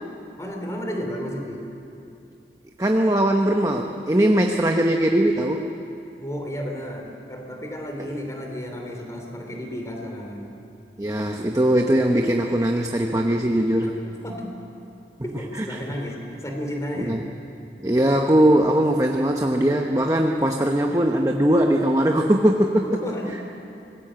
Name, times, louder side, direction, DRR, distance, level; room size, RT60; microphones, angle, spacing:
voice 1, 0.4-1.6 6.2-10.5 13.8-13.9 14.2-14.5 15.2-17.2 22.8-23.4, equal, 20° left, 2 dB, 3.3 m, -32 dB
voice 2, 2.8-5.7 8.0-8.1 11.0-14.0 15.6-15.8 17.0-17.2 17.8-22.9, right 1 dB, 20° right, 2 dB, 0.9 m, -20 dB
25.5 x 20.0 x 7.6 m, 2.7 s
head